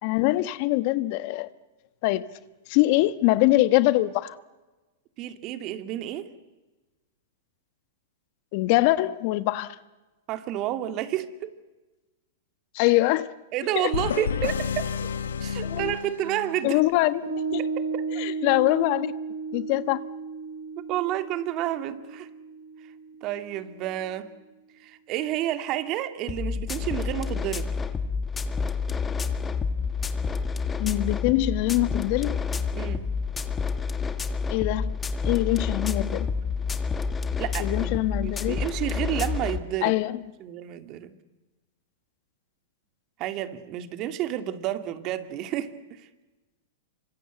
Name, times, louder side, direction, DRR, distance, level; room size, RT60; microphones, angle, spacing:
voice 1, 0.0-1.5 2.0-2.3 2.7-4.3 8.5-9.7 12.7-13.3 13.7-13.9 15.6-15.9 16.6-17.2 17.5-17.6 18.2-19.1 19.5-20.0 30.8-32.4 34.5-35.0 35.2-36.3 37.6-38.6 39.8-40.2, left 18 dB, 50° left, 1.2 m, -23 dB
voice 2, 5.2-6.3 10.3-11.5 13.5-14.9 15.4-16.8 17.8-18.0 20.9-22.3 23.2-24.3 24.8-27.7 32.7-33.1 37.4-37.9 38.2-39.9 40.4-41.2 43.2-46.1, right 12 dB, 40° right, 2.3 m, -30 dB
sound 1, 13.9-16.7, left 7 dB, 80° left, 1.4 m, -30 dB
Piano, 17.2-24.0, right 4 dB, 90° right, 3.5 m, -34 dB
sound 2, 26.3-39.6, left 5 dB, 15° left, 1.8 m, -29 dB
28.0 x 25.0 x 8.2 m
hypercardioid pair, 120°, 0 cm